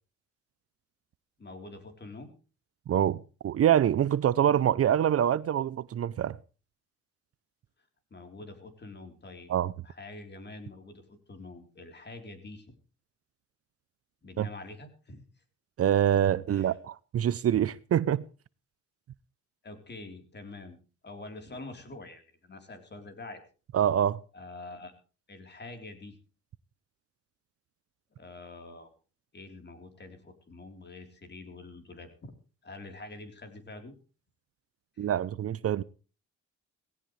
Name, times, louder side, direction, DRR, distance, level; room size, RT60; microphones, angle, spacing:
voice 1, 1.4-2.3 8.1-9.5 9.8-12.8 14.2-15.2 16.5-16.8 19.6-20.8 21.0-23.4 24.3-24.9 25.3-26.2 28.2-28.9 29.3-32.3 32.6-33.9 35.0-35.1, left 2 dB, 35° left, 3.8 m, -46 dB
voice 2, 2.9-6.4 9.5-9.7 14.4-14.5 15.8-18.2 23.7-24.2 35.0-35.8, right 10 dB, 50° right, 0.6 m, -25 dB
17.5 x 16.5 x 3.2 m
cardioid pair, 90°, 30 cm